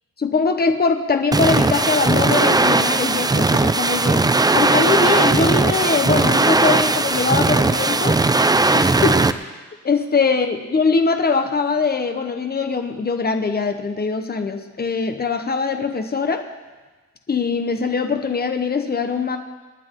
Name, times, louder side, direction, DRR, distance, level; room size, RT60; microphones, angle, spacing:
voice 1, 0.2-4.2 4.5-8.2 8.7-9.6 9.8-16.4 17.3-19.4, left 4 dB, 35° left, 6 dB, 1.0 m, -22 dB
sound 1, 1.3-9.3, right 3 dB, 15° right, 0.4 m, -18 dB
27.5 x 9.5 x 3.8 m, 1.3 s
wide cardioid pair, 155°, 29 cm